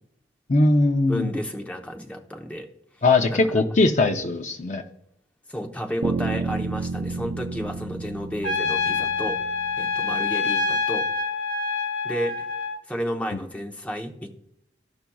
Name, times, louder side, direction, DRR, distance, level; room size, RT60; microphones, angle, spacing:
voice 1, 0.5-1.3 3.0-4.8, left 2 dB, 45° left, 6 dB, 0.6 m, -20 dB
voice 2, 1.1-2.7 3.3-3.6 5.5-9.4 9.8-11.1 12.0-12.5 12.9-14.3, equal, 10° left, 2 dB, 0.8 m, -32 dB
sound 1, 6.0-10.0, right 4 dB, 65° right, 0.6 m, -31 dB
Trumpet, 8.4-12.8, left 4 dB, 85° left, 0.9 m, -26 dB
15.5 x 5.8 x 2.3 m, 0.77 s
head